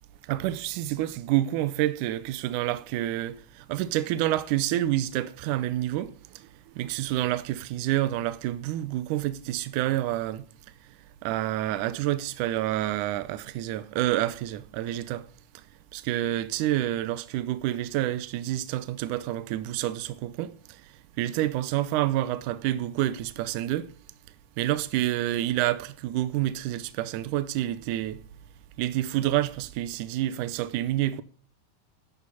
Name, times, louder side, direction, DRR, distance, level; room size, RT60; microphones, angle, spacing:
voice 1, 0.3-6.5 6.8-10.4 11.2-15.2 15.9-20.5 21.2-23.9 24.6-28.2 28.8-31.2, right 14 dB, 80° right, 2.1 m, -28 dB
10.5 x 8.2 x 6.8 m
omnidirectional pair, 3.7 m